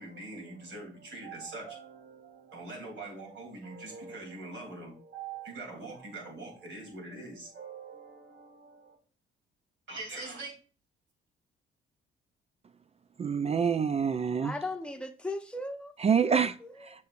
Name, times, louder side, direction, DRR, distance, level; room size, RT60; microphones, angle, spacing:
voice 1, 0.0-9.0 9.9-10.5, right 3 dB, 70° right, 3.2 m, -43 dB
voice 2, 13.2-14.5 16.0-16.5 16.8-17.1, right 6 dB, 30° right, 0.4 m, -26 dB
voice 3, 14.4-16.0 16.3-17.0, left 2 dB, 5° left, 0.9 m, -38 dB
6.8 x 6.6 x 2.5 m
cardioid pair, 90°, 20 cm